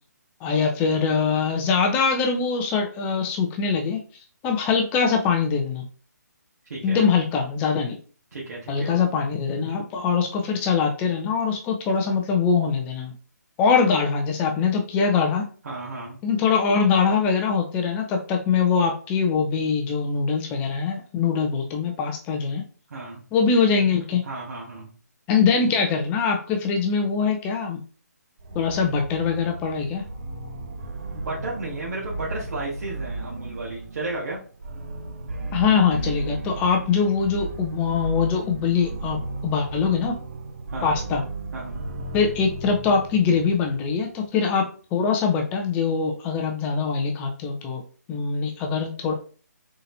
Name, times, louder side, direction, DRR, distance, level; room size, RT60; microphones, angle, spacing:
voice 1, 0.4-4.0 4.4-5.8 6.8-8.0 8.7-13.1 13.6-15.5 16.2-22.6 23.3-24.2 25.3-27.8 28.5-30.0 35.5-40.2 40.8-41.2 42.1-47.8 48.1-49.1, left 5 dB, 15° left, 3 dB, 0.6 m, -23 dB
voice 2, 6.7-7.1 8.3-9.0 15.6-16.2 22.9-23.2 24.2-24.9 31.0-34.4 40.7-41.0 41.5-41.8, right 2 dB, 65° right, -6 dB, 1.7 m, -33 dB
sound 1, 28.4-44.1, right 2 dB, 45° right, 0.7 m, -35 dB
4.2 x 3.8 x 2.7 m, 0.39 s
figure-of-eight pair, 150°, 10 cm